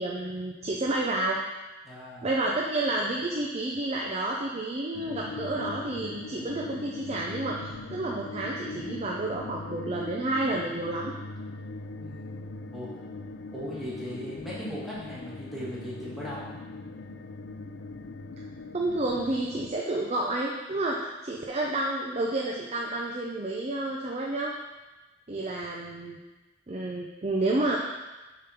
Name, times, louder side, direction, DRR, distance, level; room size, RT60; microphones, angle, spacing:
voice 1, 0.0-1.4 2.2-7.6 7.9-11.1 18.7-24.5 25.3-26.2 26.7-27.8, right 2 dB, 35° right, -2 dB, 0.6 m, -30 dB
voice 2, 1.8-2.3 12.0-12.3 12.7-12.9 13.5-16.4 25.3-25.4, equal, ahead, -9 dB, 1.9 m, -38 dB
sound 1, 4.9-19.7, left 3 dB, 80° left, 0.5 m, -40 dB
7.2 x 3.8 x 5.7 m, 1.1 s
head